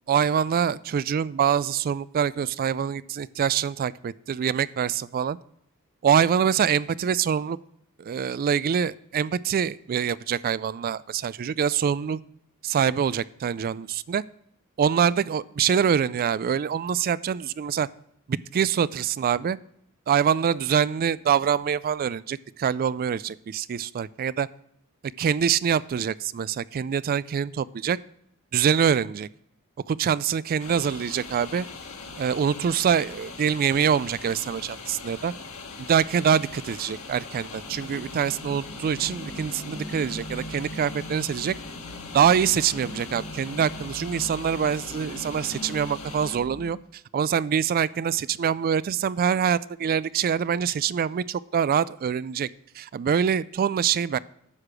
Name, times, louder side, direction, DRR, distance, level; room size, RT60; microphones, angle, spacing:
voice 1, 0.1-5.4 6.0-7.6 8.0-12.2 12.6-14.2 14.8-17.9 18.3-19.6 20.1-24.5 25.2-28.0 28.5-29.3 29.9-31.7 32.2-35.3 35.8-41.5 42.1-46.8 47.1-52.5 52.8-54.2, right 8 dB, 40° right, 19 dB, 0.3 m, -25 dB
sound 1, 30.6-46.4, left 4 dB, 70° left, 1.7 m, -41 dB
sound 2, 37.5-46.8, equal, 25° left, 1.2 m, -41 dB
9.8 x 6.6 x 6.0 m, 0.73 s
head